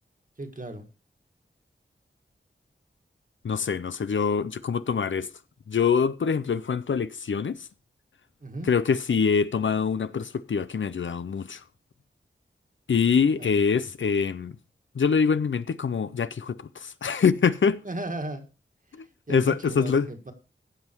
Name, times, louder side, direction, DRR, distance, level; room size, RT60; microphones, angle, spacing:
voice 1, 0.4-0.9 8.4-8.7 13.4-13.9 17.8-18.4 19.3-20.3, right 1 dB, 40° right, 1.9 m, -36 dB
voice 2, 3.4-5.3 5.7-7.7 8.7-11.6 12.9-14.5 14.9-17.8 18.9-20.1, left 6 dB, 75° left, 0.6 m, -24 dB
16.0 x 5.6 x 4.5 m
wide cardioid pair, 60°, 20 cm